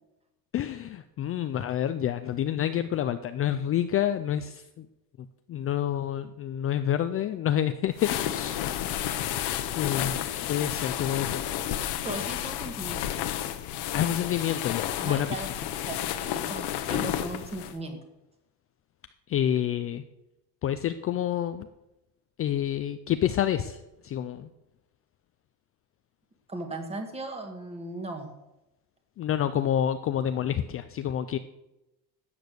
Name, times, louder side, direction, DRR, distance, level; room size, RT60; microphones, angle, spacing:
voice 1, 0.5-4.9 5.2-8.7 9.8-11.5 13.9-15.4 19.3-20.0 20.6-21.7 22.4-24.5 29.2-31.4, left 10 dB, 35° left, 10 dB, 0.4 m, -28 dB
sound 1, 7.9-17.7, left 11 dB, 80° left, 1.2 m, -31 dB
voice 2, 12.0-13.1 15.0-15.5 15.9-18.0 26.5-28.3, right 2 dB, 15° right, 5 dB, 1.7 m, -37 dB
13.0 x 8.4 x 6.7 m, 0.95 s
cardioid pair, 170°, 40 cm